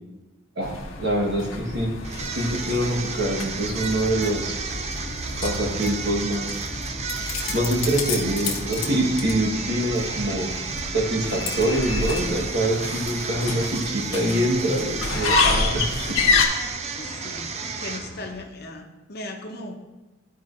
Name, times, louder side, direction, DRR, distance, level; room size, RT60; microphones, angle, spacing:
sound 1, 0.6-16.4, left 3 dB, 80° left, 1.0 m, -29 dB
voice 1, 1.0-1.9 2.3-4.6 5.4-6.6 7.5-10.5 10.9-16.2, right 1 dB, 55° right, -1 dB, 1.4 m, -25 dB
sound 2, 2.0-18.4, right 5 dB, 35° right, 0.4 m, -33 dB
sound 3, 3.5-18.4, equal, 5° left, 1.0 m, -42 dB
voice 2, 17.0-17.5 17.8-19.8, left 2 dB, 50° left, 3 dB, 0.8 m, -37 dB
12.0 x 4.7 x 2.6 m, 1.1 s
head